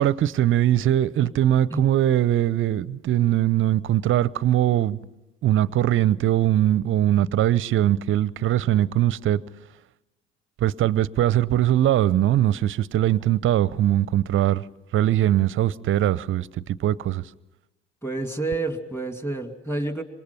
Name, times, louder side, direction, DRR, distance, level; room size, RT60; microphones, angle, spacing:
voice 1, 0.0-5.0 5.4-9.4 10.6-14.6 14.9-16.5 16.8-17.2, right 12 dB, 40° right, 0.7 m, -21 dB
voice 2, 18.0-20.0, right 2 dB, 5° left, 2.5 m, -29 dB
27.0 x 24.0 x 5.8 m
hypercardioid pair, 65°, 33 cm